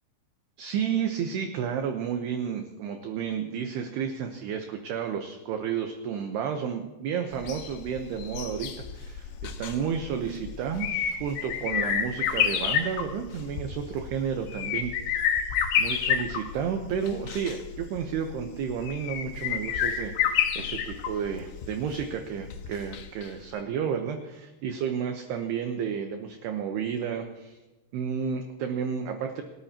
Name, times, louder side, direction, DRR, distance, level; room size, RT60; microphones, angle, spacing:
voice 1, 0.6-15.2 15.8-27.6 27.9-29.4, right 7 dB, 70° right, 4 dB, 2.7 m, -31 dB
sound 1, 7.3-23.3 23.6-23.7, left 8 dB, 80° left, 3.5 m, -30 dB
28.5 x 13.5 x 2.9 m, 1.1 s
omnidirectional pair, 5.6 m